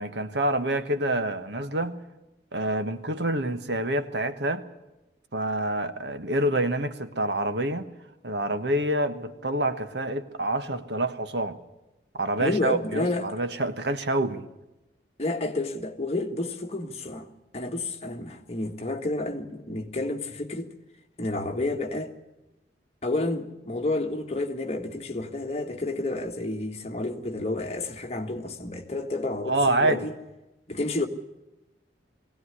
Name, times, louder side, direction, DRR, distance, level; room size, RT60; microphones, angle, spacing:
voice 1, 0.0-2.0 2.5-4.6 5.3-7.9 8.2-11.6 12.1-14.4 29.5-30.1, right 1 dB, 75° right, 1.4 m, -27 dB
voice 2, 12.4-13.3 15.2-17.3 17.5-20.7 21.2-22.1 23.0-30.1 30.7-31.1, left 2 dB, 35° left, 1.7 m, -30 dB
20.5 x 17.0 x 9.8 m
head